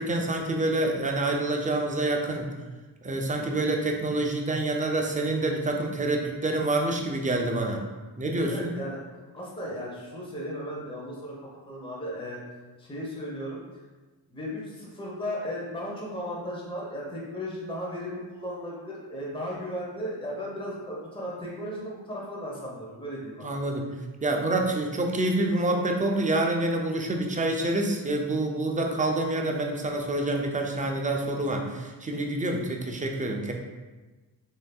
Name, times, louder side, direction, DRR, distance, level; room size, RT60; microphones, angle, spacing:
voice 1, 0.0-2.5 3.0-7.8 8.2-8.7 23.4-23.9 24.2-33.5, right 2 dB, 20° right, 2 dB, 0.4 m, -27 dB
voice 2, 8.5-12.4 12.8-13.6 14.3-23.8, equal, 10° left, -4 dB, 0.8 m, -36 dB
3.2 x 2.6 x 2.3 m, 1.2 s
cardioid pair, 45°, 46 cm